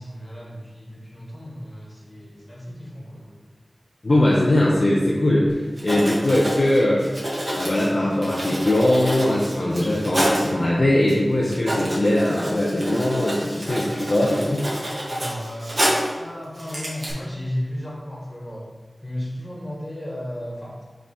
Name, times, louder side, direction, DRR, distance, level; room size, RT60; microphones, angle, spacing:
voice 1, 0.0-3.4 15.1-18.7 19.0-20.8, left 1 dB, 30° left, -4 dB, 1.9 m, -34 dB
voice 2, 4.0-7.2 7.5-14.7, left 1 dB, 50° left, -5 dB, 0.8 m, -20 dB
Writing, 5.5-5.6 5.8-10.5 11.1-11.2 11.4-16.2 16.6-17.1, equal, 40° right, 1.8 m, -28 dB
5.3 x 3.8 x 5.0 m, 1.3 s
wide cardioid pair, 80°, 0 cm